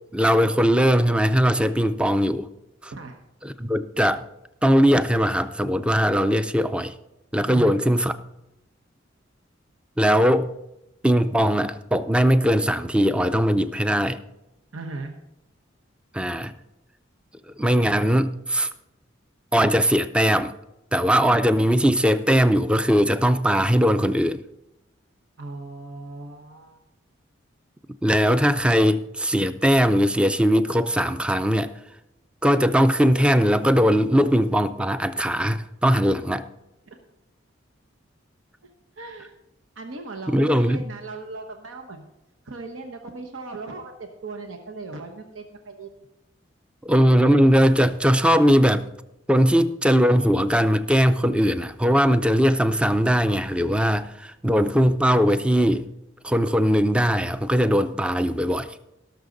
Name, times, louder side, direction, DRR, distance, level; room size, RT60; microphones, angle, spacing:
voice 1, 0.1-2.5 2.8-2.9 3.4-4.2 4.6-6.9 7.3-8.1 10.0-10.5 11.0-14.2 16.1-16.5 17.5-18.7 19.5-20.5 20.9-24.4 28.0-31.7 32.4-36.4 40.3-40.8 46.8-48.9 49.3-55.9 56.2-58.8, equal, 5° right, 0.4 m, -20 dB
voice 2, 14.7-15.1 25.4-26.8 35.9-36.2 36.9-37.0 39.0-39.3 39.8-42.1 42.4-45.9, right 3 dB, 85° right, 1.0 m, -37 dB
17.5 x 6.5 x 3.9 m
head